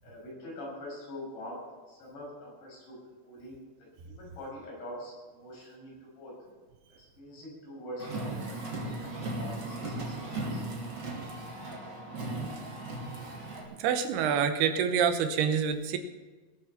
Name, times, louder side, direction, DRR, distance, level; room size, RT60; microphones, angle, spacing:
voice 1, 0.0-1.6 1.9-3.0 3.2-3.6 4.1-6.3 7.0-8.6 9.0-10.6, left 1 dB, 85° left, -4 dB, 8.8 m, -44 dB
Car, 8.0-13.6, right 2 dB, 30° right, 2.5 m, -37 dB
voice 2, 13.8-16.0, right 7 dB, 75° right, 8 dB, 2.7 m, -26 dB
20.0 x 8.5 x 5.9 m, 1.3 s
omnidirectional pair, 5.1 m